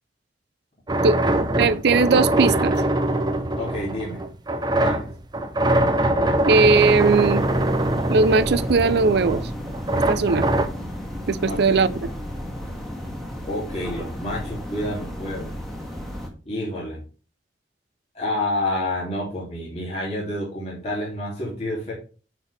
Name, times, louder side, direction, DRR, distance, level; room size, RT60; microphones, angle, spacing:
sound 1, 0.9-10.7, right 1 dB, 25° right, 0.8 m, -23 dB
voice 1, 1.6-2.8 6.5-7.4 8.1-9.4 9.9-10.5 11.3-12.1, right 4 dB, 65° right, 0.5 m, -19 dB
voice 2, 3.6-4.3 4.8-5.0 11.4-11.9 13.5-15.5 16.5-17.0 18.1-21.9, left 1 dB, 40° left, 2.7 m, -29 dB
sound 2, 6.5-16.3, equal, ahead, 1.9 m, -33 dB
9.6 x 4.5 x 3.3 m
head